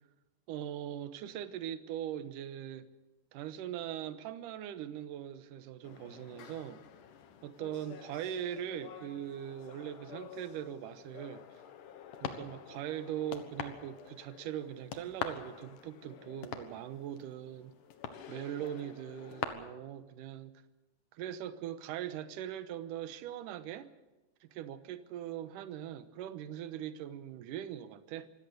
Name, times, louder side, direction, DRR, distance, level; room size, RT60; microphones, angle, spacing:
voice 1, 0.5-2.9 3.3-6.8 7.4-11.5 12.2-17.7 18.3-20.6 21.1-23.9 24.4-28.3, right 10 dB, 70° right, 2.4 m, -41 dB
sound 1, 5.8-19.4, left 9 dB, 65° left, 2.7 m, -46 dB
25.0 x 17.0 x 6.7 m
omnidirectional pair, 4.4 m